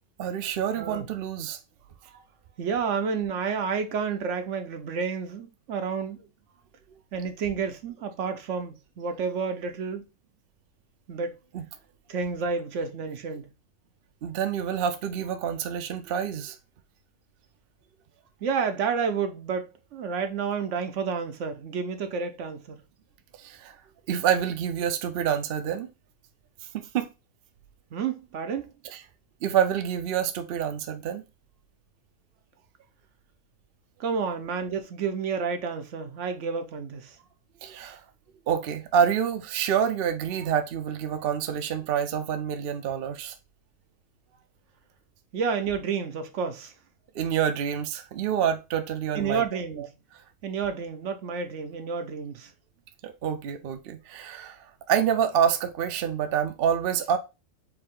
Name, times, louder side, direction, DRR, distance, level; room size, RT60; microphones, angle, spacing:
voice 1, 0.2-1.6 11.5-11.7 14.2-16.6 23.4-23.7 24.1-25.9 26.7-27.1 28.9-29.0 29.4-31.2 37.6-38.0 38.5-43.3 47.1-49.4 49.8-49.9 53.0-54.6 54.9-57.2, right 8 dB, 60° right, 0.7 m, -27 dB
voice 2, 0.7-1.1 2.6-6.2 7.1-10.0 11.1-11.4 12.1-13.5 18.4-22.8 27.9-28.7 34.0-37.1 45.3-46.7 49.1-49.9 50.4-52.5, right 5 dB, 75° right, 1.1 m, -30 dB
4.8 x 2.7 x 3.7 m
omnidirectional pair, 1.3 m